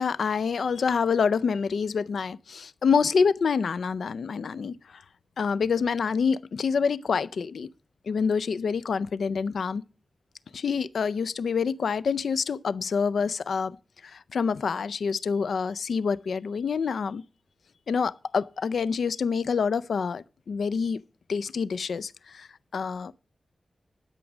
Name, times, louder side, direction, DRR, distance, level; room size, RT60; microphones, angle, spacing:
voice 1, 0.0-5.0 5.4-7.7 8.1-9.8 10.5-13.8 14.0-17.2 17.9-21.0 21.3-23.1, left 5 dB, 90° left, 0.4 m, -27 dB
12.0 x 6.0 x 6.2 m
wide cardioid pair, 120°, 0 cm